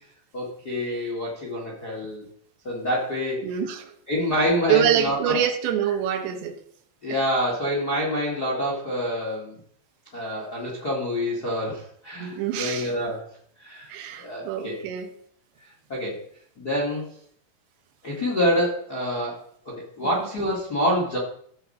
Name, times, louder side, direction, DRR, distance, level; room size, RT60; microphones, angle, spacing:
voice 1, 0.3-2.2 2.6-3.5 4.1-5.4 7.0-9.6 10.1-13.3 13.6-13.9 14.2-14.8 15.9-16.2 16.6-17.1 18.0-21.2, equal, 45° left, -3 dB, 1.2 m, -27 dB
voice 2, 3.4-3.9 4.7-6.6 7.1-7.2 12.2-12.9 13.9-15.1 20.2-20.3, right 10 dB, 75° right, 7 dB, 3.0 m, -25 dB
15.5 x 6.9 x 4.2 m, 0.63 s
omnidirectional pair, 5.3 m